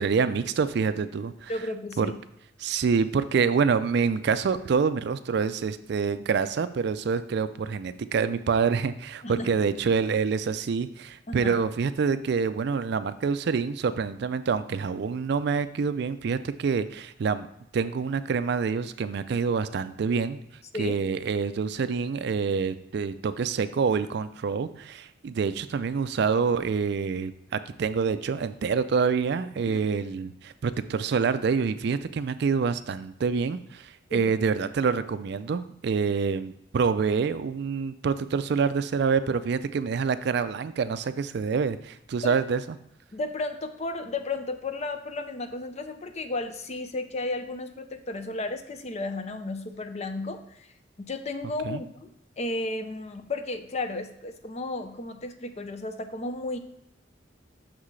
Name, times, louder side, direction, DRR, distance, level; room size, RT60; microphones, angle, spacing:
voice 1, 0.0-1.5 2.0-2.1 2.6-17.5 17.7-20.4 20.8-42.6 51.6-51.8, right 5 dB, 60° right, 12 dB, 0.4 m, -26 dB
voice 2, 1.5-2.2 9.2-9.5 11.3-11.5 20.7-21.0 29.7-29.8 34.1-34.3 42.2-42.4 43.1-50.7 51.0-56.6, left 2 dB, 35° left, 8 dB, 0.5 m, -33 dB
6.4 x 6.0 x 3.2 m, 0.79 s
head